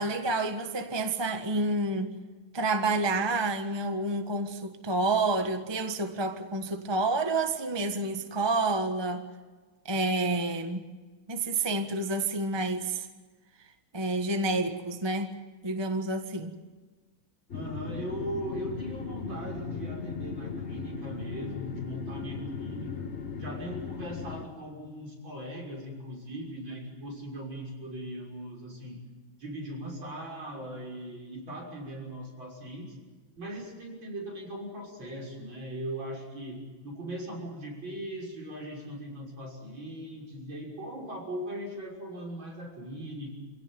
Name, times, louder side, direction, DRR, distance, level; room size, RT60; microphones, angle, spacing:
voice 1, 0.0-2.2 2.5-9.2 9.8-10.8 11.3-13.1 13.9-15.3 15.6-16.5, right 2 dB, 15° right, 6 dB, 1.3 m, -29 dB
sound 1, 17.5-24.5, left 5 dB, 40° left, 1.2 m, -37 dB
voice 2, 17.5-23.1 23.4-29.0 29.4-33.0 33.4-43.3, right 1 dB, 70° right, -1 dB, 7.1 m, -39 dB
27.0 x 17.0 x 9.1 m, 1.3 s
omnidirectional pair, 2.2 m